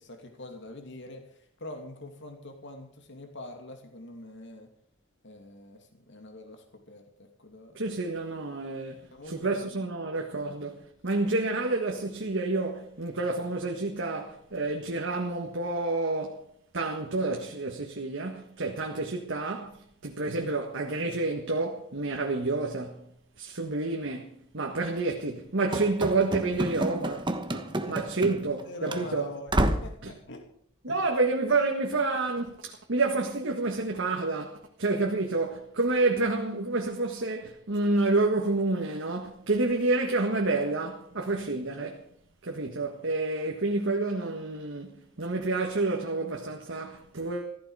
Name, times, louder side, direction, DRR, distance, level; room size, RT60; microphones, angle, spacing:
voice 1, 0.0-4.7 5.2-7.9 9.1-9.9 27.6-28.1 28.7-30.4 30.9-31.0, left 1 dB, 60° left, 2.6 m, -44 dB
voice 2, 7.7-16.4 16.7-23.0 23.4-29.3 30.0-30.1 30.8-42.0 42.4-47.6, right 3 dB, 65° right, 1.6 m, -29 dB
Run / Slam, 25.7-28.6 28.9-29.0 29.5-30.0, right 1 dB, 25° right, 1.2 m, -29 dB
15.0 x 14.5 x 4.9 m
head